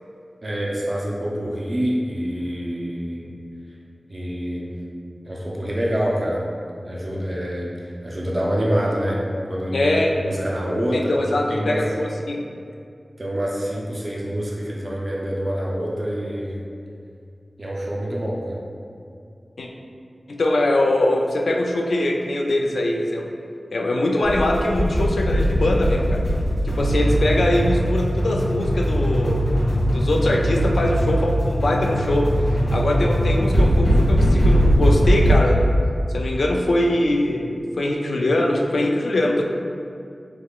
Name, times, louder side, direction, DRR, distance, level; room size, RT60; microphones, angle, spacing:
voice 1, 0.4-3.3 4.1-4.8 5.2-6.5 6.8-9.9 10.2-11.1 11.5-11.8 13.2-16.6 17.6-18.6, equal, 40° right, -4 dB, 0.4 m, -26 dB
voice 2, 9.7-10.1 10.9-12.4 19.6-19.7 20.3-23.3 23.7-26.2 26.6-29.4 29.9-32.3 32.5-35.6 36.1-39.4, left 1 dB, 90° left, 1 dB, 0.3 m, -22 dB
sound 1, 24.2-35.3, equal, 60° left, 1.4 m, -20 dB
3.6 x 3.1 x 2.3 m, 2.4 s
wide cardioid pair, 75°, 0 cm